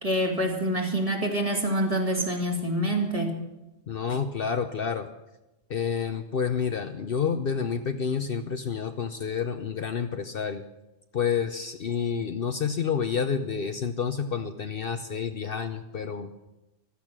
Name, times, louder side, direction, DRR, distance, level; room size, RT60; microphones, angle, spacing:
voice 1, 0.0-3.4, right 1 dB, 30° right, 0 dB, 2.7 m, -26 dB
voice 2, 3.9-5.1 5.7-10.6 11.1-16.3, left 6 dB, 55° left, 8 dB, 0.9 m, -29 dB
15.5 x 13.0 x 6.1 m, 0.96 s
omnidirectional pair, 1.2 m